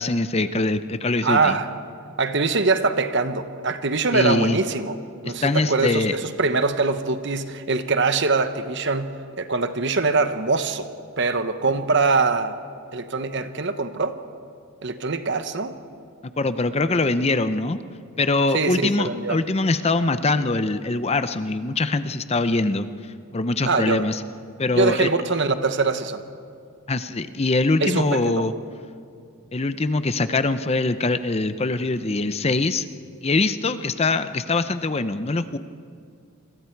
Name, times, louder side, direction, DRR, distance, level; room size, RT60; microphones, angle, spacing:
voice 1, 0.0-1.5 4.1-4.6 5.2-6.2 16.4-17.8 18.2-24.2 24.6-25.1 26.9-28.5 29.5-32.9 33.2-35.6, left 2 dB, 30° left, 11 dB, 0.6 m, -23 dB
voice 2, 1.2-1.7 2.2-4.9 5.2-10.9 11.2-12.6 12.9-14.2 14.8-15.8 18.5-19.4 23.7-24.0 24.7-26.2 27.8-28.4, right 3 dB, 55° right, 10 dB, 1.1 m, -23 dB
28.5 x 22.5 x 4.6 m, 2.4 s
head